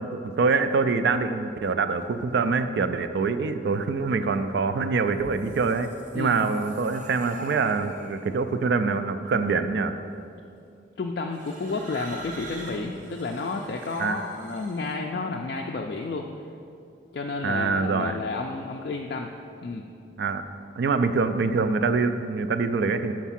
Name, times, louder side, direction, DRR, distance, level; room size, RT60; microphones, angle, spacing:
voice 1, 0.0-9.9 14.0-14.2 17.4-18.2 20.2-20.4 20.8-23.1, right 4 dB, 70° right, 10 dB, 0.3 m, -25 dB
sound 1, 5.1-8.4 9.3-9.7 11.3-14.9, right 1 dB, 45° right, 0.7 m, -44 dB
voice 2, 11.0-16.3 17.1-19.3 19.6-19.8, left 3 dB, 55° left, 1 dB, 0.3 m, -31 dB
7.1 x 4.6 x 5.8 m, 2.5 s
head